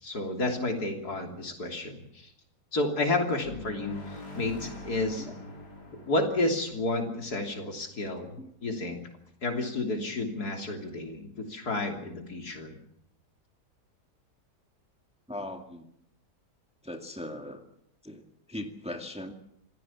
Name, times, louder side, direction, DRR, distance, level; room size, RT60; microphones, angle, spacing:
voice 1, 0.0-2.3 2.7-5.3 6.1-9.0 9.4-12.8, left 2 dB, 70° left, 3 dB, 3.7 m, -31 dB
sound 1, 3.4-8.0, left 1 dB, 85° left, 4.7 m, -44 dB
voice 2, 15.3-15.9 16.8-17.6 18.0-19.3, left 1 dB, 5° right, 5 dB, 1.9 m, -39 dB
26.5 x 16.5 x 7.3 m, 0.74 s
omnidirectional pair, 1.8 m